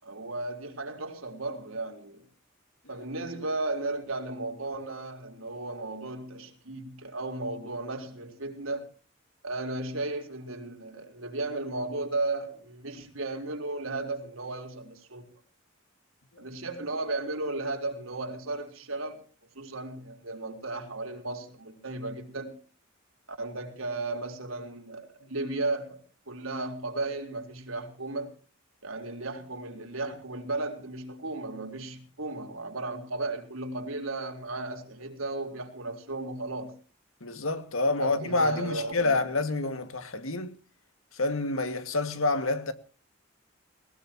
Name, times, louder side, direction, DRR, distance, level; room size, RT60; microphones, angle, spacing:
voice 1, 0.0-2.2 2.9-8.9 9.4-15.2 16.4-19.2 19.5-22.6 23.3-28.3 28.8-36.7 38.0-39.2, right 2 dB, 85° right, 4.0 m, -35 dB
voice 2, 37.2-40.6 41.1-42.7, left 2 dB, 90° left, 2.1 m, -28 dB
20.0 x 19.5 x 3.0 m
head